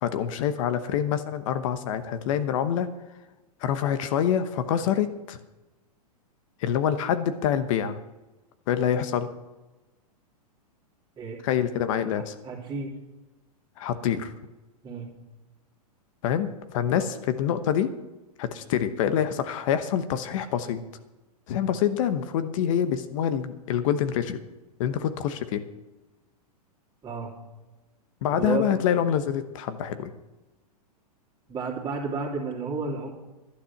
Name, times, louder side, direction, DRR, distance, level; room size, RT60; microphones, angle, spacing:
voice 1, 0.0-2.9 3.6-5.4 6.6-8.0 8.7-9.3 11.4-12.3 13.8-14.3 16.2-17.9 18.4-20.8 21.5-24.4 24.8-25.6 28.2-30.1, left 9 dB, 55° left, 10 dB, 1.0 m, -26 dB
voice 2, 12.1-12.9 14.8-15.1 17.0-17.1 27.0-27.3 28.4-28.7 31.5-33.1, right 4 dB, 20° right, -1 dB, 2.9 m, -31 dB
11.5 x 10.0 x 5.9 m, 1.1 s
hypercardioid pair, 125°, 20 cm